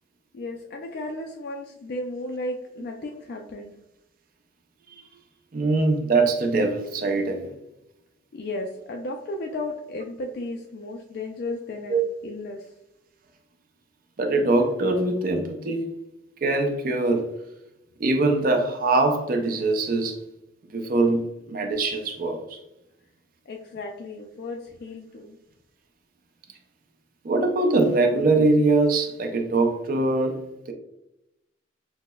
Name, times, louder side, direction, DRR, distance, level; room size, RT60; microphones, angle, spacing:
voice 1, 0.3-3.7 8.3-12.6 23.5-25.4, left 2 dB, 50° left, 1 dB, 0.3 m, -34 dB
voice 2, 5.5-7.5 11.9-12.0 14.2-15.9 16.4-17.3 18.0-20.2 20.7-22.6 27.2-30.7, right 2 dB, 45° right, 4 dB, 0.4 m, -22 dB
5.9 x 2.0 x 2.2 m, 0.86 s
head